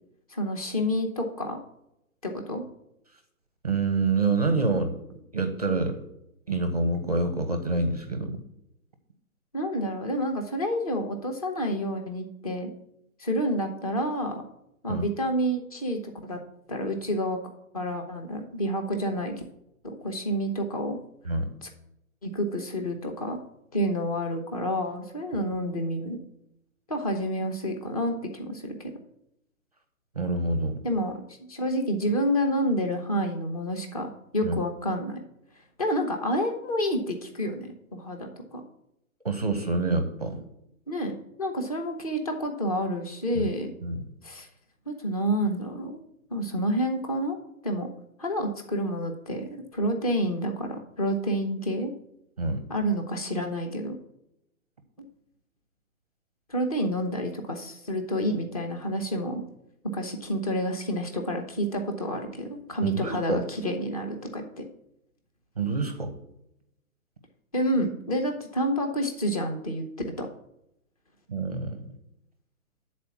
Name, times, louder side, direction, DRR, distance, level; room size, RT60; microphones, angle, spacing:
voice 1, 0.3-1.6 2.2-2.6 9.5-12.7 13.2-14.4 14.8-16.4 16.7-17.4 17.7-19.3 19.8-21.0 21.6-21.7 22.2-23.4 23.7-26.2 26.9-28.9 30.8-35.2 35.8-38.6 40.9-43.7 44.2-44.5 44.9-46.0 46.3-47.4 47.6-47.9 48.2-51.9 52.7-54.0 56.5-59.4 59.9-64.6 67.5-69.8 70.2-70.3, equal, 25° left, 4 dB, 0.8 m, -29 dB
voice 2, 3.6-4.9 5.3-6.0 6.5-8.4 14.9-15.1 21.3-21.5 30.1-30.8 34.4-34.6 39.2-40.4 43.3-43.5 43.8-44.0 52.4-52.6 62.8-63.4 65.6-66.1 71.3-71.8, right 3 dB, 30° right, 7 dB, 0.6 m, -27 dB
8.7 x 4.3 x 7.0 m, 0.82 s
hypercardioid pair, 175°, 42 cm